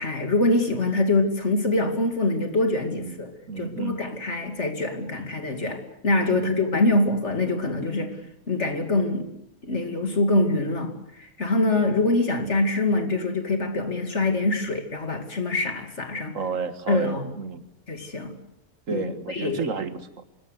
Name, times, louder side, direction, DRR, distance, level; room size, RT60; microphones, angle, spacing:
voice 1, 0.0-8.2 8.5-9.3 9.6-16.4 16.9-17.3 17.9-18.4 18.9-19.0 19.3-19.6, left 2 dB, 50° left, 6 dB, 2.9 m, -24 dB
voice 2, 3.5-4.0 6.3-6.8 11.7-11.8 16.3-17.7 18.9-20.3, right 5 dB, 65° right, 11 dB, 2.0 m, -31 dB
25.5 x 20.5 x 8.2 m, 0.78 s
omnidirectional pair, 1.5 m